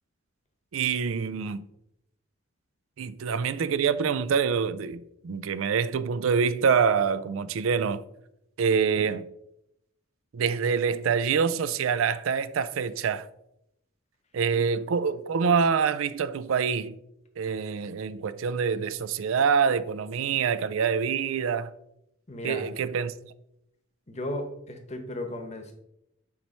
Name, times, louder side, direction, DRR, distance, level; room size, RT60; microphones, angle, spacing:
voice 1, 0.7-1.6 3.0-8.0 8.6-9.3 10.3-13.3 14.3-17.0 17.4-21.7 22.4-23.1, right 6 dB, 80° right, 0.4 m, -26 dB
voice 2, 22.3-22.7 24.1-25.7, left 1 dB, 35° left, 0.9 m, -35 dB
7.3 x 3.1 x 5.3 m
head